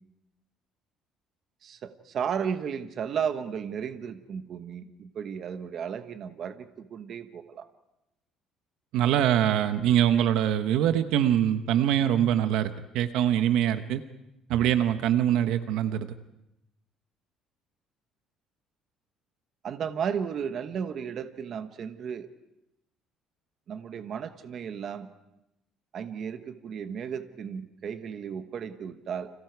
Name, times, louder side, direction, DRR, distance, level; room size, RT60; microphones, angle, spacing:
voice 1, 1.6-7.7 19.6-22.3 23.7-25.1 25.9-29.3, right 7 dB, 40° right, 9 dB, 1.2 m, -34 dB
voice 2, 8.9-14.0 14.5-16.1, right 10 dB, 70° right, 10 dB, 1.0 m, -24 dB
30.0 x 27.0 x 4.7 m, 0.89 s
cardioid pair, 170°, 0 cm